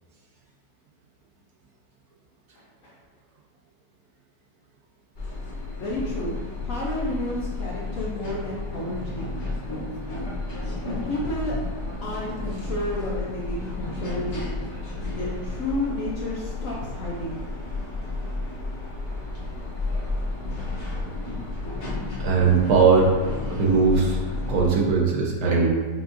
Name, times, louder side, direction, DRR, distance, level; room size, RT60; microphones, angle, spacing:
sound 1, 5.1-24.7, left 2 dB, 50° left, 1.1 m, -32 dB
voice 1, 5.8-9.3 10.8-11.6 12.0-14.3 15.1-17.4, left 1 dB, 65° left, -4 dB, 0.8 m, -31 dB
voice 2, 22.2-23.1 23.5-24.2 24.5-25.7, right 5 dB, 70° right, -2 dB, 1.0 m, -19 dB
6.9 x 2.3 x 2.5 m, 1.4 s
omnidirectional pair, 1.9 m